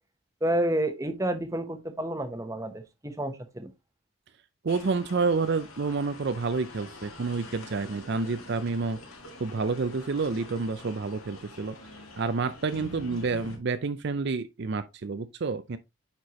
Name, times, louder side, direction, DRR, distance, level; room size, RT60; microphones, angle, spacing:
voice 1, 0.4-3.7, right 1 dB, 15° right, 0.9 m, -30 dB
voice 2, 4.6-9.0 9.4-11.8 12.2-15.8, right 4 dB, 50° right, 0.5 m, -29 dB
sound 1, 4.7-13.6, left 1 dB, 80° left, 2.5 m, -46 dB
9.4 x 4.5 x 3.0 m
head